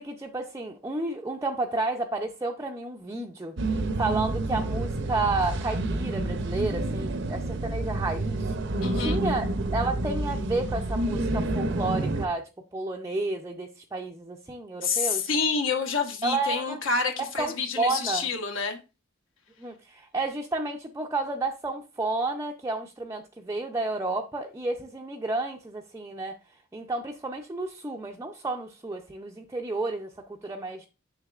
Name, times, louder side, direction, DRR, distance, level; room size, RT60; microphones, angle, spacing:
voice 1, 0.0-3.5 4.0-8.5 8.9-12.4 12.7-15.3 16.2-16.8 17.4-18.2 19.6-26.3 26.7-30.1 30.4-30.9, right 2 dB, 15° right, 0.4 m, -31 dB
sound 1, 3.6-12.3, right 2 dB, 60° right, 0.6 m, -29 dB
voice 2, 8.8-9.2 14.8-18.8, left 5 dB, 65° left, 1.1 m, -28 dB
6.8 x 6.5 x 2.4 m
head